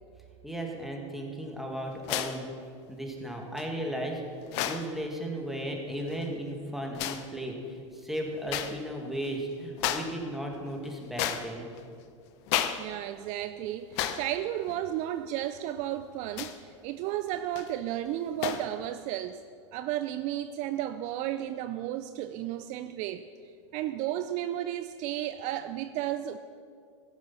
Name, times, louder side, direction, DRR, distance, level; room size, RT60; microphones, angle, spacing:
voice 1, 0.4-2.5 2.9-4.2 4.6-11.7, right 1 dB, ahead, 0 dB, 2.1 m, -35 dB
sound 1, 2.0-2.4 3.6-3.7 4.4-4.9 6.0-6.3 6.9-7.3 8.5-8.8 9.1-9.3 9.8-10.2 10.5-11.8 12.5-12.9 13.2-13.3 13.9-14.3 14.7-14.8 16.3-16.7 17.3-17.7 18.4-18.7, left 11 dB, 60° left, 0.9 m, -32 dB
voice 2, 12.8-19.4 19.7-23.3 23.7-26.4, right 12 dB, 50° right, 11 dB, 0.5 m, -33 dB
16.0 x 7.5 x 5.8 m, 2.2 s
hypercardioid pair, 100°, 16 cm